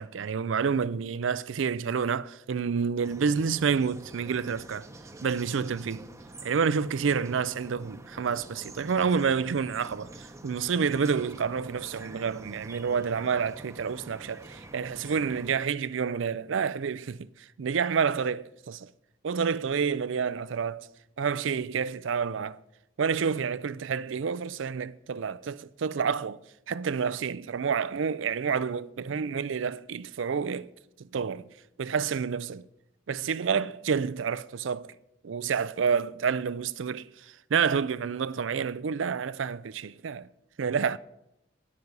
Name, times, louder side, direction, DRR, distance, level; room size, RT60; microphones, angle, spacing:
voice 1, 0.0-4.9 5.2-6.1 6.4-18.9 19.2-20.9 21.2-22.6 23.0-30.7 31.0-31.5 31.8-32.6 33.1-34.9 35.2-40.3 40.6-41.0, right 6 dB, 70° right, 0.4 m, -29 dB
sound 1, 3.0-15.5, right 2 dB, 15° right, 0.9 m, -47 dB
12.5 x 11.0 x 5.3 m
head